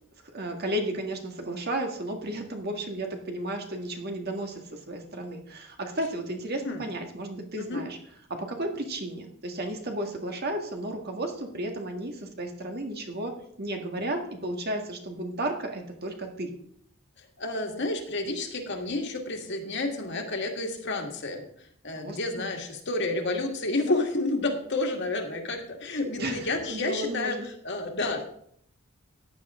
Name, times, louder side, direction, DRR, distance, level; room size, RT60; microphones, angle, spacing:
voice 1, 0.3-8.0 8.4-13.3 13.6-16.5 22.0-22.5 26.2-27.5, right 1 dB, 50° right, 3 dB, 1.8 m, -33 dB
voice 2, 17.2-21.4 21.8-27.4 27.6-28.2, left 2 dB, 55° left, 2 dB, 2.0 m, -30 dB
14.5 x 9.9 x 3.7 m, 0.65 s
head